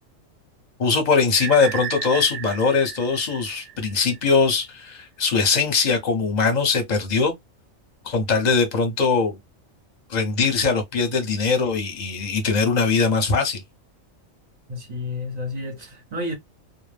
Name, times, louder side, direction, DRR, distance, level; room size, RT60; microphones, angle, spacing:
voice 1, 0.8-7.3 8.0-9.4 10.1-13.6, left 4 dB, 40° left, 0.7 m, -21 dB
sound 1, 1.3-4.2, right 10 dB, 90° right, 1.0 m, -34 dB
voice 2, 14.7-16.3, left 2 dB, 40° right, 0.6 m, -31 dB
2.2 x 2.0 x 3.2 m
omnidirectional pair, 1.3 m